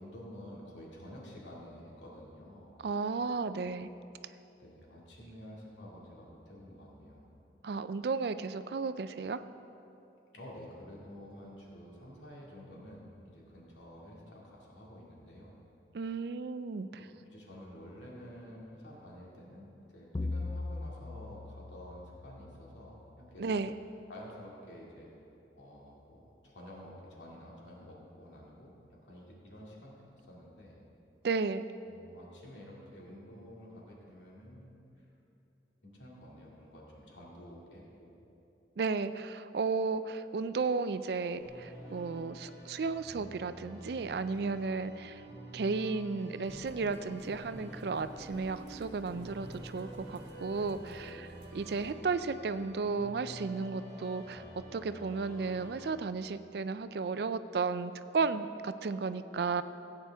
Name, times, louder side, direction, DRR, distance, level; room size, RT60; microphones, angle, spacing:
voice 1, 0.0-2.8 3.5-3.7 4.6-7.3 10.3-15.5 16.9-19.7 19.9-23.5 24.1-25.1 25.6-30.8 31.9-35.1 35.8-38.1, equal, 85° left, -4 dB, 2.2 m, -50 dB
voice 2, 2.8-3.9 7.6-9.4 15.9-16.9 23.4-23.7 31.2-31.7 38.8-45.2 45.5-59.6, right 4 dB, 60° right, 12 dB, 0.4 m, -34 dB
sound 1, 20.1-22.9, left 2 dB, 25° left, 0.4 m, -39 dB
sound 2, 41.4-55.9, right 1 dB, 25° right, 2.9 m, -49 dB
sound 3, 46.4-51.9, equal, 80° right, 1.4 m, -51 dB
16.0 x 8.9 x 3.5 m, 2.8 s
head